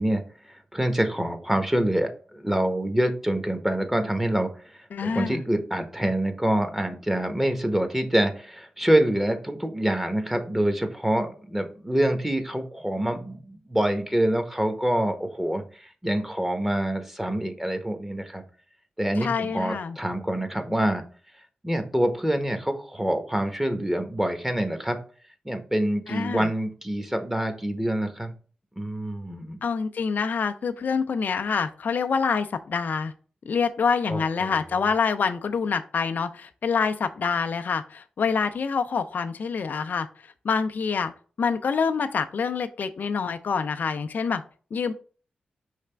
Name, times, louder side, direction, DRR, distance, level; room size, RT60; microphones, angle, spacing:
voice 1, 0.0-18.4 19.0-21.0 21.6-25.0 25.4-28.3 28.8-29.6 34.1-34.6, right 1 dB, 10° right, 7 dB, 0.9 m, -26 dB
voice 2, 4.9-5.4 19.2-20.0 26.1-26.5 29.6-33.1 33.5-40.1 40.4-41.1 41.4-44.4 44.7-44.9, left 5 dB, 65° left, 8 dB, 0.4 m, -26 dB
4.9 x 3.3 x 3.3 m, 0.40 s
cardioid pair, 45°, 3 cm